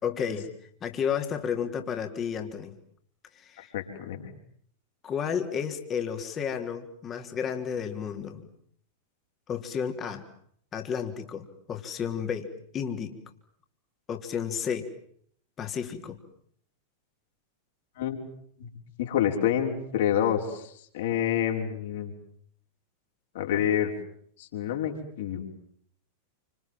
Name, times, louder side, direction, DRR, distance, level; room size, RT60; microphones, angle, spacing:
voice 1, 0.0-0.5 0.8-2.8 3.3-3.7 5.0-8.4 9.5-10.3 10.7-12.5 12.7-13.2 14.1-14.9 15.6-16.2, left 7 dB, 25° left, 5 dB, 3.4 m, -32 dB
voice 2, 3.6-4.3 18.0-18.2 18.6-18.7 19.0-22.1 23.3-23.9 24.4-25.4, left 10 dB, 55° left, 3 dB, 5.6 m, -28 dB
29.5 x 27.0 x 7.6 m, 0.65 s
figure-of-eight pair, 90°, 0 cm